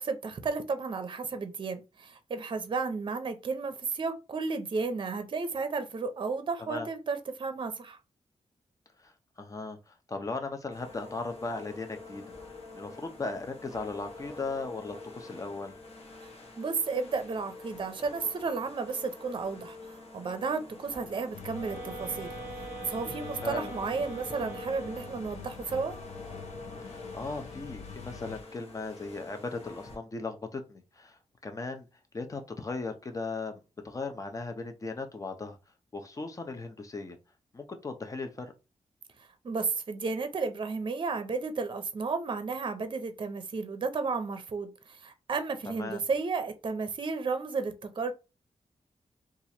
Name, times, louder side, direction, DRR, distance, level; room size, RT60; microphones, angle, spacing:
voice 1, 0.0-8.0 16.2-16.3 16.6-26.0 39.4-48.1, right 4 dB, 45° right, 0.6 m, -33 dB
voice 2, 9.4-12.2 12.7-15.7 23.4-23.7 26.8-31.2 31.4-31.9 32.1-35.6 35.9-37.2 37.5-38.5 45.8-46.0, left 3 dB, 30° left, 0.6 m, -37 dB
sound 1, 10.7-30.0, left 2 dB, 60° left, 1.1 m, -47 dB
sound 2, 21.3-28.4, left 6 dB, 80° left, 0.6 m, -45 dB
sound 3, 21.5-25.4, right 4 dB, 20° right, 0.9 m, -43 dB
2.9 x 2.4 x 4.2 m
wide cardioid pair, 145°, 12 cm